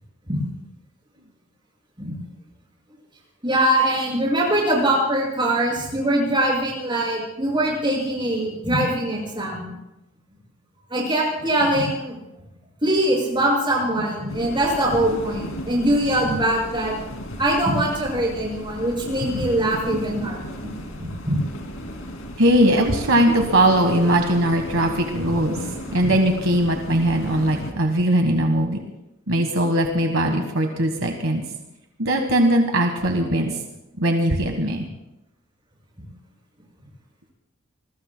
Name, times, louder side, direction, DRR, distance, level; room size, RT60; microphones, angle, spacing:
voice 1, 3.4-9.7 10.9-12.2 12.8-17.0 17.4-20.7 21.0-21.4, right 1 dB, 20° right, -2 dB, 6.2 m, -22 dB
sound 1, 14.3-27.7, equal, 75° left, 2.6 m, -34 dB
voice 2, 22.4-25.6 25.9-28.8 29.3-31.4 32.0-33.6 34.0-34.9, right 1 dB, 70° right, 4 dB, 1.4 m, -20 dB
27.0 x 21.0 x 2.2 m, 0.92 s
head